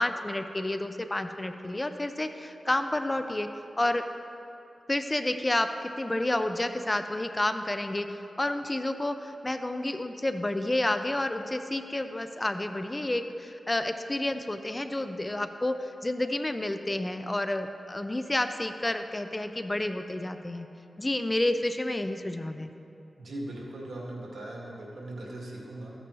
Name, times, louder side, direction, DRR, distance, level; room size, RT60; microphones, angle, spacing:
voice 1, 0.0-3.5 3.8-4.0 4.9-20.7 21.0-22.7, left 1 dB, 25° left, 8 dB, 0.6 m, -30 dB
voice 2, 23.2-25.9, right 1 dB, 75° right, -3 dB, 2.0 m, -39 dB
14.5 x 9.0 x 3.1 m, 2.7 s
cardioid pair, 50°, 0 cm